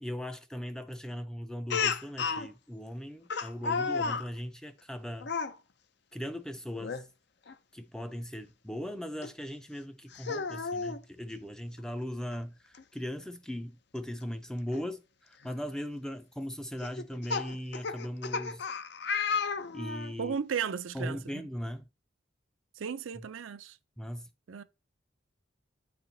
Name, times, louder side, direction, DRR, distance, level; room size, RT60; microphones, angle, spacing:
voice 1, 0.0-5.3 6.1-7.0 7.7-15.0 15.3-18.6 19.7-20.4 20.9-21.9 23.2-23.3 24.0-24.3, equal, 5° left, 0.4 m, -38 dB
Speech, 1.7-2.5 3.3-4.3 5.2-5.5 6.8-7.0 7.5-7.6 9.2-9.3 10.1-11.0 12.3-12.4 12.7-12.8 14.7-14.8 15.5-15.7 16.8-20.1, left 5 dB, 55° left, 0.5 m, -32 dB
voice 2, 20.2-21.4 22.8-23.8 24.5-24.6, right 7 dB, 80° right, 0.5 m, -35 dB
8.7 x 4.2 x 4.0 m
head